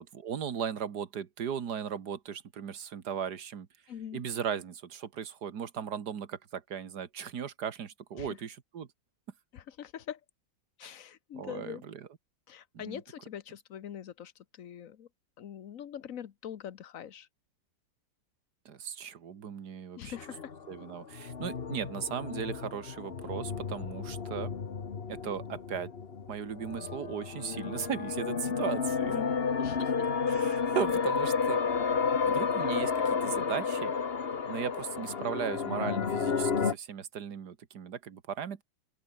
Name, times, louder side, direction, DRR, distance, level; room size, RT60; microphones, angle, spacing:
voice 1, 0.0-3.7 4.1-8.9 10.8-10.9 11.3-12.0 12.7-13.0 18.7-20.1 20.7-24.5 25.1-25.9 26.3-29.1 30.3-31.6 32.3-33.9 34.5-38.6, right 8 dB, 60° right, 2.0 m, -37 dB
voice 2, 3.9-4.2 8.2-8.4 9.5-10.2 10.8-11.8 12.5-15.1 15.4-17.3 20.0-20.5 29.0-30.1, left 9 dB, 55° left, 1.2 m, -43 dB
sound 1, 20.1-36.7, left 5 dB, 35° left, 1.4 m, -32 dB
open air
omnidirectional pair, 2.0 m